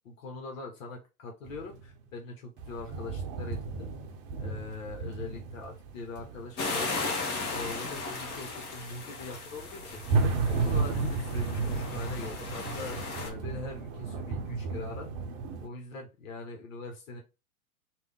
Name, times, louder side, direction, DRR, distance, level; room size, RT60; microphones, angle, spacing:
voice 1, 0.0-3.9 4.4-7.1 7.5-10.0 10.5-15.1 15.6-17.2, left 3 dB, 60° left, 2 dB, 1.3 m, -42 dB
sound 1, 1.5-1.9 2.6-15.7, right 4 dB, 40° right, 0.8 m, -33 dB
sound 2, 6.6-13.3, left 3 dB, 25° left, 1.1 m, -36 dB
3.5 x 2.6 x 3.6 m, 0.28 s
hypercardioid pair, 120°, 44 cm